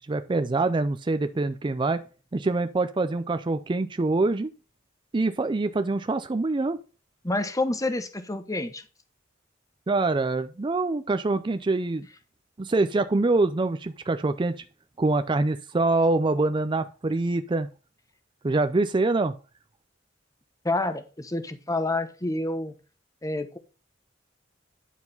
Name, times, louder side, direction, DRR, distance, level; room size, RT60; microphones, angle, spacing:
voice 1, 0.1-2.0 2.3-4.5 5.1-6.8 9.9-12.1 12.6-14.6 15.0-17.7 18.4-19.3, right 3 dB, 25° right, 10 dB, 0.4 m, -25 dB
voice 2, 7.2-8.8 20.6-22.7 23.2-23.6, left 2 dB, 15° left, 9 dB, 1.0 m, -28 dB
9.9 x 4.8 x 5.4 m, 0.35 s
head